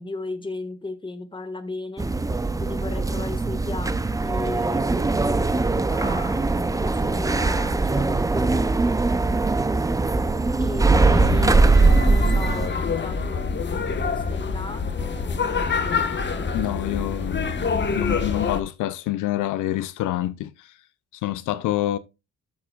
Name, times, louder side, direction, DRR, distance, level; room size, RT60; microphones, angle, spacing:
voice 1, 0.0-2.1 2.6-5.6 5.9-8.7 10.6-11.6 12.0-15.9, left 2 dB, 15° left, 1.6 m, -35 dB
sound 1, 2.0-12.7, right 3 dB, 10° right, 0.5 m, -21 dB
sound 2, 11.1-18.6, left 5 dB, 35° left, 1.3 m, -26 dB
voice 2, 16.5-17.6 17.9-20.8 21.1-22.0, left 14 dB, 85° left, 0.6 m, -27 dB
12.5 x 7.2 x 2.4 m
cardioid pair, 90°, 30 cm